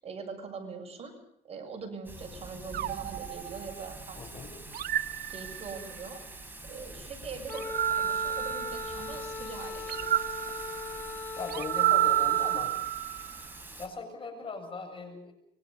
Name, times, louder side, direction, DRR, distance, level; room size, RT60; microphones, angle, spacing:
voice 1, 0.0-1.1 1.4-4.2 5.3-6.2 6.7-10.2, right 4 dB, 35° right, 3 dB, 7.1 m, -42 dB
Thunder / Rain, 2.0-13.9, right 2 dB, 10° right, 6.1 m, -45 dB
sound 1, 2.7-4.1 4.7-6.0 7.5-9.2 9.9-13.4, right 13 dB, 65° right, 0.8 m, -30 dB
voice 2, 4.1-4.5 11.3-12.8 13.8-15.3, left 4 dB, 30° left, 6 dB, 7.4 m, -39 dB
Wind instrument woodwind instrument, 7.5-12.6, left 4 dB, 15° left, 4.3 m, -39 dB
26.0 x 24.0 x 5.5 m, 0.73 s
cardioid pair, 110°, 17 cm